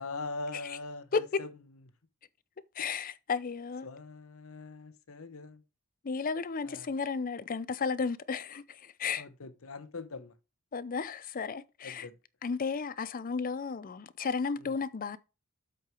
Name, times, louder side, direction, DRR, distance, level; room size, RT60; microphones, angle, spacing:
voice 1, 0.0-1.5 2.8-3.0 3.8-5.6 6.6-6.9 9.2-10.3 11.8-12.2 14.6-14.7, left 3 dB, 75° left, 0.9 m, -42 dB
voice 2, 1.1-1.4 2.8-3.9 6.0-9.3 10.7-12.1 12.4-15.2, left 5 dB, 40° left, 0.5 m, -33 dB
7.9 x 4.7 x 4.7 m
head